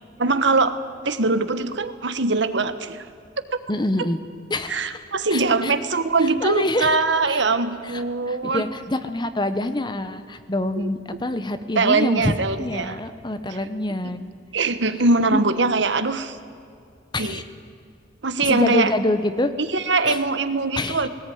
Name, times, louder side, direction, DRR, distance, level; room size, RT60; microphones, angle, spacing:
voice 1, 0.2-0.8 1.0-3.1 4.7-8.7 10.8-10.9 11.7-13.0 14.0-14.1 14.5-16.4 17.2-17.4 18.2-18.9 19.7-21.1, right 3 dB, 65° right, 10 dB, 1.2 m, -22 dB
voice 2, 3.7-4.2 4.5-5.0 5.3-5.7 6.2-7.4 7.8-14.3 15.2-15.4 17.1-17.4 18.4-19.5 20.1-20.2 20.8-21.1, left 1 dB, 25° left, 10 dB, 1.0 m, -26 dB
19.5 x 18.0 x 9.4 m, 2.4 s
head